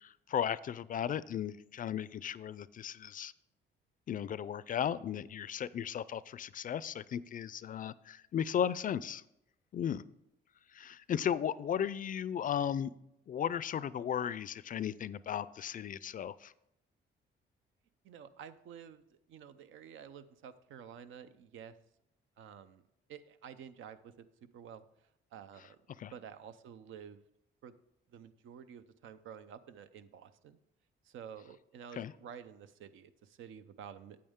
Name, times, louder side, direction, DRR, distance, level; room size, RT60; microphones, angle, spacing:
voice 1, 0.0-3.3 4.1-9.2 9.7-10.0 10.8-12.9 13.3-16.5 26.0-26.1 32.0-32.1, left 9 dB, 45° left, 18 dB, 0.4 m, -35 dB
voice 2, 18.0-21.7 22.4-22.8 23.1-24.9 25.3-25.8 26.1-27.2 27.6-27.7 28.1-30.6 31.0-34.2, right 8 dB, 80° right, 12 dB, 0.6 m, -50 dB
8.8 x 8.6 x 3.6 m, 0.81 s
cardioid pair, 90°, 20 cm